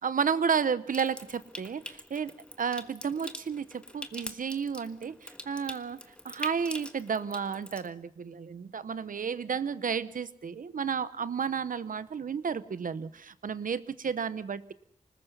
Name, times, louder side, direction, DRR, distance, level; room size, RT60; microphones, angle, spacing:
voice 1, 0.0-2.3 2.6-6.0 6.2-14.7, right 6 dB, 75° right, 15 dB, 0.9 m, -32 dB
Water tap faucet / Sink (filling or washing) / Trickle dribble, 0.9-7.9, left 1 dB, 5° left, 1.5 m, -45 dB
25.5 x 20.0 x 5.5 m, 0.65 s
wide cardioid pair, 105°, 14 cm